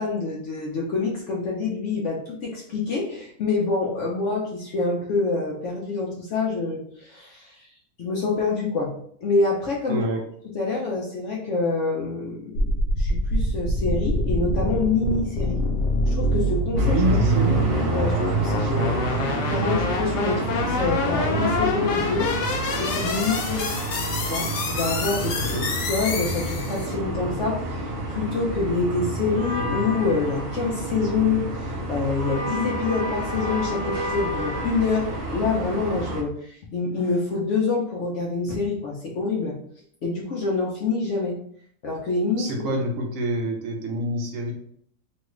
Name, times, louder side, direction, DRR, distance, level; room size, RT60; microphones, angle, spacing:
voice 1, 0.0-7.6 8.0-8.9 9.2-10.0 10.4-15.6 16.1-16.9 17.7-22.3 22.8-23.8 24.2-25.5 25.9-39.6 40.0-41.4 41.8-42.5, left 4 dB, 60° left, -2 dB, 0.8 m, -26 dB
voice 2, 9.9-10.2 16.8-17.7 25.4-25.7 42.3-44.5, right 1 dB, 65° right, 2 dB, 0.9 m, -26 dB
sound 1, 12.5-26.9, left 2 dB, 90° left, 1.2 m, -26 dB
sound 2, 16.8-36.2, right 2 dB, 80° right, 0.5 m, -28 dB
3.1 x 2.3 x 3.0 m, 0.63 s
omnidirectional pair, 1.7 m